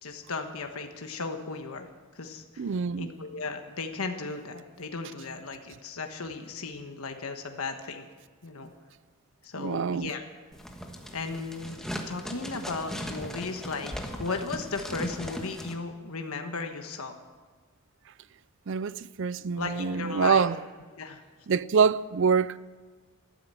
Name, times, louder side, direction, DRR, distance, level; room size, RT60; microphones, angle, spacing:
voice 1, 0.0-8.0 8.4-8.7 9.4-10.2 11.1-11.8 12.1-13.9 14.2-17.2 19.5-20.5 20.9-21.2, left 4 dB, 85° left, 1.3 m, -36 dB
voice 2, 2.6-3.1 9.6-10.1 18.7-20.6 21.5-22.6, right 6 dB, 60° right, 0.4 m, -25 dB
sound 1, 10.5-15.7, equal, ahead, 1.4 m, -38 dB
13.5 x 12.5 x 7.7 m
head